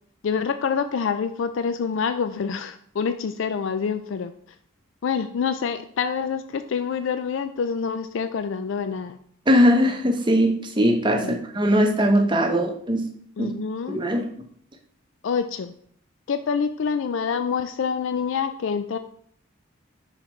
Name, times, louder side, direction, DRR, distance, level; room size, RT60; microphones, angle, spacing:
voice 1, 0.2-4.3 5.0-9.2 11.2-11.4 13.4-14.0 15.2-15.7 16.3-19.0, left 6 dB, 60° left, 9 dB, 0.3 m, -26 dB
voice 2, 9.5-13.0 13.4-13.5 13.9-14.3, equal, 20° right, 3 dB, 0.8 m, -20 dB
5.7 x 4.9 x 4.4 m, 0.62 s
head